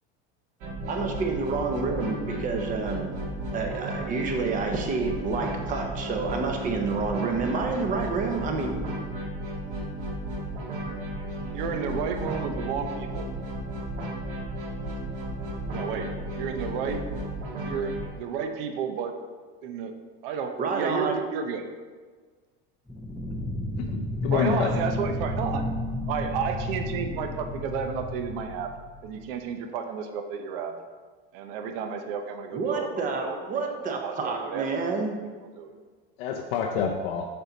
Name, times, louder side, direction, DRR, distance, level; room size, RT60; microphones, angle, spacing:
sound 1, 0.6-18.1, right 1 dB, 50° right, 2.0 m, -34 dB
voice 1, 0.8-3.1 3.5-8.8 20.6-21.2 32.5-35.2, right 4 dB, 25° right, 3 dB, 0.9 m, -29 dB
voice 2, 11.5-13.3 15.7-17.2 17.6-19.1 19.6-19.9 20.2-21.6 24.3-25.7 26.1-28.7 29.0-30.8 31.3-33.6 34.0-34.9 35.6-35.7, right 6 dB, 70° right, 6 dB, 0.8 m, -32 dB
sound 2, 22.9-29.3, left 1 dB, ahead, 0.4 m, -32 dB
voice 3, 23.8-24.7 36.2-37.3, left 7 dB, 90° left, 1 dB, 0.7 m, -28 dB
6.9 x 5.5 x 4.0 m, 1.5 s
cardioid pair, 165°, 30 cm